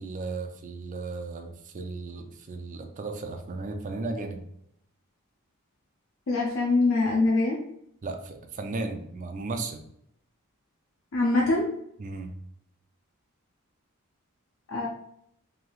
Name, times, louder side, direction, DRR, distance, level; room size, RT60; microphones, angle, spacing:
voice 1, 0.0-4.4 8.0-9.8 12.0-12.4, right 3 dB, 35° right, 4 dB, 0.3 m, -35 dB
voice 2, 6.3-7.6 11.1-11.6 14.7-14.9, left 2 dB, 65° left, -2 dB, 0.5 m, -23 dB
3.1 x 2.6 x 2.3 m, 0.73 s
head